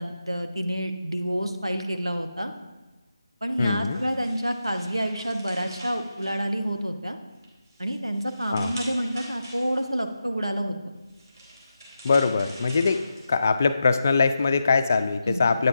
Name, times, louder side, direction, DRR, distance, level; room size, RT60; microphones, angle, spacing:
voice 1, 0.0-2.5 3.4-7.2 7.8-10.9 15.3-15.5, equal, 85° right, 5 dB, 0.9 m, -28 dB
sound 1, 3.5-6.9 7.3-10.0 10.9-13.7, right 1 dB, 45° right, 2.6 m, -45 dB
voice 2, 3.6-4.0 8.5-8.7 12.0-13.0 13.3-15.7, left 4 dB, 30° left, 9 dB, 0.3 m, -22 dB
9.0 x 8.8 x 2.7 m, 1.2 s
figure-of-eight pair, 155°, 3 cm